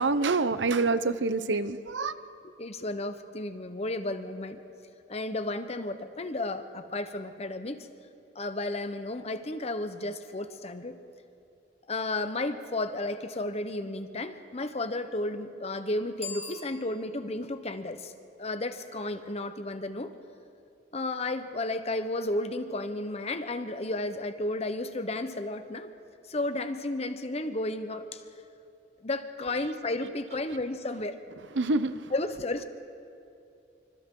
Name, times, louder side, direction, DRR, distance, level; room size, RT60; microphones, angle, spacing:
voice 1, 0.0-2.1 29.5-29.6 31.5-32.0, right 3 dB, 85° right, 13 dB, 0.8 m, -27 dB
voice 2, 2.4-4.6 5.1-7.9 8.3-11.0 11.9-18.1 18.4-20.1 20.9-25.9 26.3-28.2 29.0-31.2 32.1-32.6, left 2 dB, 35° left, 9 dB, 1.0 m, -33 dB
Bicycle bell, 16.1-17.4, left 3 dB, 15° left, 3.4 m, -42 dB
27.0 x 25.5 x 3.8 m, 2.6 s
head